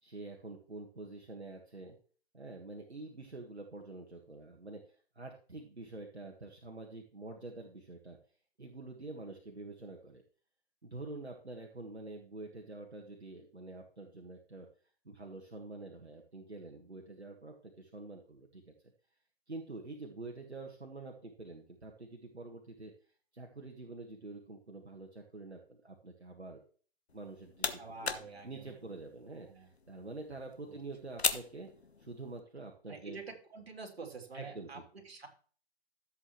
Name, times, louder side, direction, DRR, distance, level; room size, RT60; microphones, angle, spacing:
voice 1, 0.0-2.0 2.3-8.2 8.6-10.2 10.8-14.7 15.1-18.7 19.5-22.9 23.3-26.6 27.1-28.1 28.4-31.7 32.0-33.2 34.3-34.8, right 2 dB, 85° right, 1 dB, 1.7 m, -47 dB
sound 1, 27.1-32.4, left 4 dB, 80° left, 1.3 m, -40 dB
voice 2, 27.8-28.8 29.5-29.7 30.7-30.8 32.9-35.3, right 4 dB, 70° right, 3 dB, 3.2 m, -47 dB
14.0 x 8.1 x 3.1 m, 0.43 s
figure-of-eight pair, 130°, 32 cm